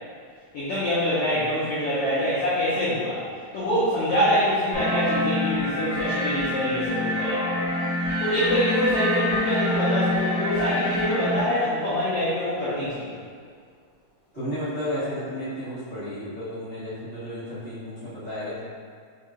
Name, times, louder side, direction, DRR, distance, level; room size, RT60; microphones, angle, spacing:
voice 1, 0.5-3.2 3.5-7.5 8.2-13.2, equal, 85° left, -9 dB, 1.3 m, -25 dB
sound 1, 4.7-11.4, left 1 dB, 45° left, 1.4 m, -26 dB
voice 2, 14.3-18.6, equal, 90° right, -15 dB, 0.5 m, -32 dB
4.7 x 4.5 x 2.4 m, 2.1 s
omnidirectional pair, 3.8 m